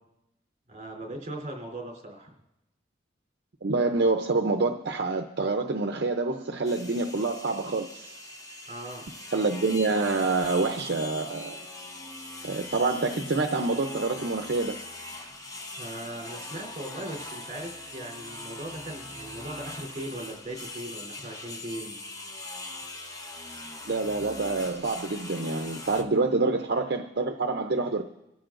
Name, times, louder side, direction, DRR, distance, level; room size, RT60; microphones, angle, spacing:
voice 1, 0.7-2.3 8.7-9.1 15.8-22.0 23.2-23.5, right 1 dB, 40° right, 0 dB, 3.6 m, -39 dB
voice 2, 3.6-8.2 9.3-11.6 12.4-14.8 23.9-28.0, right 3 dB, 65° right, 5 dB, 0.7 m, -27 dB
sound 1, 6.6-26.0, left 2 dB, 20° left, 1.1 m, -41 dB
26.0 x 13.5 x 2.6 m, 0.95 s
head